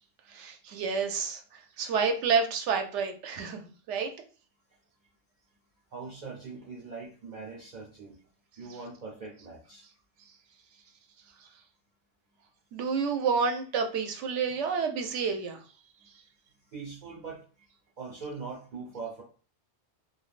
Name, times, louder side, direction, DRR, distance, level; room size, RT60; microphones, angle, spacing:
voice 1, 0.3-3.6 3.9-4.1 11.4-11.5 12.7-15.6, right 5 dB, 85° right, 6 dB, 0.9 m, -29 dB
voice 2, 5.9-8.2 8.6-9.9 16.7-17.7 18.0-19.2, right 4 dB, 50° right, -3 dB, 0.6 m, -41 dB
3.2 x 2.3 x 2.4 m, 0.39 s
omnidirectional pair, 1.2 m